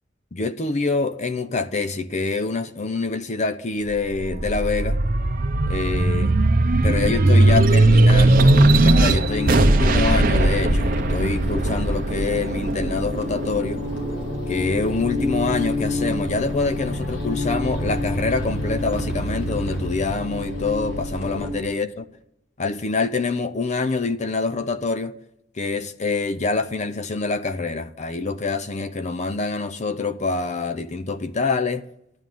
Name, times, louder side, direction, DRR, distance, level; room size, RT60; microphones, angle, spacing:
voice 1, 0.3-5.0 5.7-6.3 6.8-13.8 14.5-22.0 22.6-25.1 25.6-31.9, left 3 dB, 40° left, 0.6 m, -26 dB
sound 1, 3.9-14.7 15.2-16.3, right 2 dB, 50° right, 0.8 m, -18 dB
sound 2, 9.0-21.5, left 1 dB, 90° left, 3.9 m, -27 dB
13.0 x 9.8 x 9.2 m
head